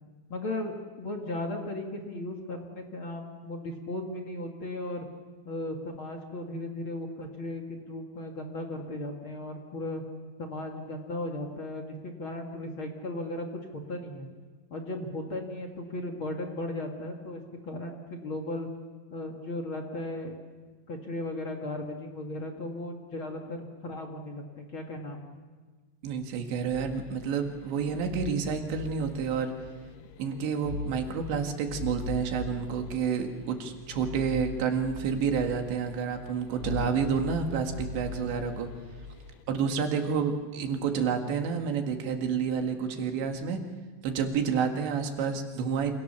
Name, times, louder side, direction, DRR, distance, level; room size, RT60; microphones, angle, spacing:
voice 1, 0.3-5.1 5.5-10.0 10.4-13.5 13.9-14.3 14.7-18.7 19.1-20.3 20.9-25.2, left 1 dB, 40° left, 2 dB, 2.0 m, -36 dB
voice 2, 26.0-29.5 30.2-38.7 39.5-43.6 44.0-46.0, right 6 dB, 80° right, 4 dB, 4.2 m, -29 dB
sound 1, 26.7-41.0, left 4 dB, 85° left, 3.7 m, -41 dB
28.0 x 27.5 x 6.9 m, 1.4 s
omnidirectional pair, 5.1 m